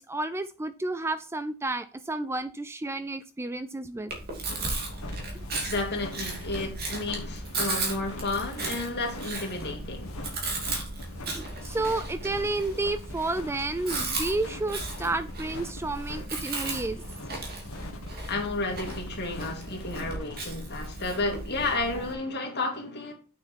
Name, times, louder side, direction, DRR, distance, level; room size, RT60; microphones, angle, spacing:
voice 1, 0.0-4.1 11.3-17.0, right 2 dB, 10° right, 0.3 m, -31 dB
Chewing mastication, 4.1-22.1, right 2 dB, 45° right, 2.7 m, -36 dB
sound 1, 4.5-20.4, left 2 dB, 75° left, 1.7 m, -44 dB
voice 2, 5.7-10.2 18.3-23.1, left 2 dB, 50° left, 2.5 m, -32 dB
8.3 x 6.5 x 4.6 m
head